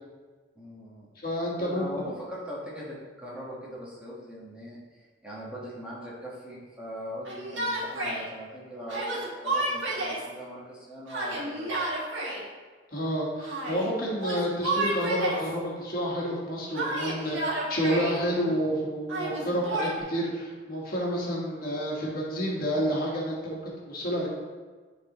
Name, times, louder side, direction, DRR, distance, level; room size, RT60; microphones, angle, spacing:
voice 1, 0.6-1.1 1.6-4.8 5.2-11.9, equal, 5° right, -7 dB, 1.3 m, -40 dB
voice 2, 1.1-1.9 12.9-24.3, equal, 50° left, -4 dB, 1.5 m, -29 dB
Yell, 7.3-8.2 8.9-10.3 11.1-12.4 13.4-13.9 14.2-15.5 16.7-18.2 19.1-20.0, right 2 dB, 85° right, 1.8 m, -31 dB
10.5 x 4.1 x 3.0 m, 1.4 s
head